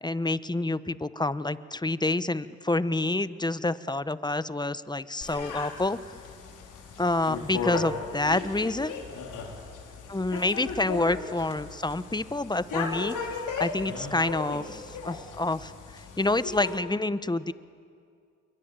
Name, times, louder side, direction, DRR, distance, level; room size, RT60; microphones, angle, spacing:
voice 1, 0.0-6.0 7.0-8.9 10.1-15.7 16.2-17.5, left 2 dB, 15° left, 15 dB, 1.0 m, -28 dB
sound 1, 5.2-16.8, left 5 dB, 75° left, 4.0 m, -37 dB
28.0 x 22.5 x 9.0 m, 2.3 s
supercardioid pair, 55°, 31 cm